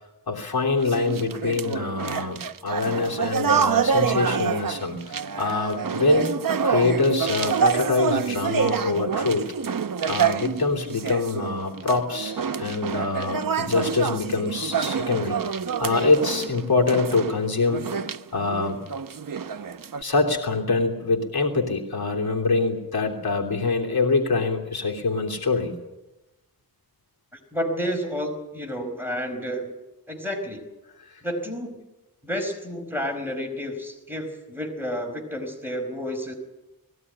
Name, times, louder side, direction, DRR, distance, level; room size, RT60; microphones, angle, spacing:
voice 1, 0.3-6.3 6.6-9.5 10.1-15.4 15.8-17.8 18.3-18.8 20.0-25.7, left 3 dB, 90° left, 0 dB, 3.1 m, -24 dB
sound 1, 0.8-20.0, right 6 dB, 65° right, 0.8 m, -27 dB
voice 2, 27.3-29.7 30.1-30.6 31.2-31.9 32.2-36.3, equal, 5° right, 3 dB, 4.7 m, -30 dB
20.0 x 17.0 x 9.9 m, 1.0 s
wide cardioid pair, 85°, 36 cm